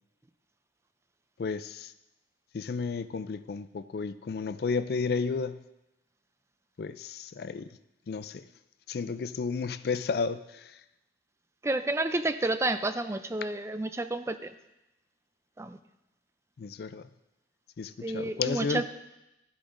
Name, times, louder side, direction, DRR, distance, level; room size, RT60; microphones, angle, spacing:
voice 1, 1.4-1.9 2.5-5.6 6.8-7.8 8.1-8.5 8.9-10.8 16.6-17.1 17.8-18.8, left 5 dB, 60° left, 13 dB, 0.4 m, -32 dB
voice 2, 11.6-14.5 15.6-15.8 18.0-18.8, right 2 dB, 15° right, 10 dB, 0.4 m, -30 dB
14.5 x 8.6 x 2.6 m, 0.93 s
head